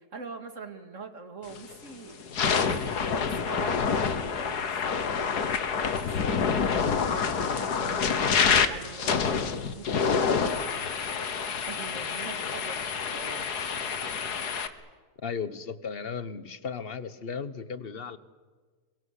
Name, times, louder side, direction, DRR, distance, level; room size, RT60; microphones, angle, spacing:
voice 1, 0.0-5.6 6.0-13.5, right 4 dB, 50° right, 8 dB, 2.6 m, -44 dB
sound 1, 1.5-1.7 2.2-14.7, left 6 dB, 80° left, 2.0 m, -27 dB
voice 2, 15.2-18.2, left 6 dB, 40° left, 15 dB, 1.3 m, -35 dB
26.5 x 23.5 x 8.3 m, 1.4 s
omnidirectional pair, 1.7 m